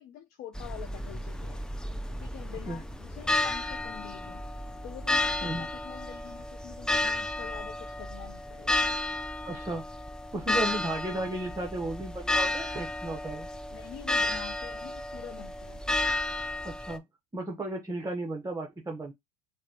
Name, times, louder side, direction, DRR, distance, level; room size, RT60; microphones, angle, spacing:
voice 1, 0.0-1.6 2.2-4.4 4.8-8.8 13.7-15.8, left 10 dB, 60° left, 0.7 m, -46 dB
sound 1, 0.6-17.0, left 2 dB, 5° left, 0.4 m, -32 dB
voice 2, 9.4-9.9 10.3-13.5 16.6-17.1 17.3-19.1, right 1 dB, 15° right, 1.0 m, -34 dB
5.1 x 2.2 x 2.9 m
hypercardioid pair, 90°, 19 cm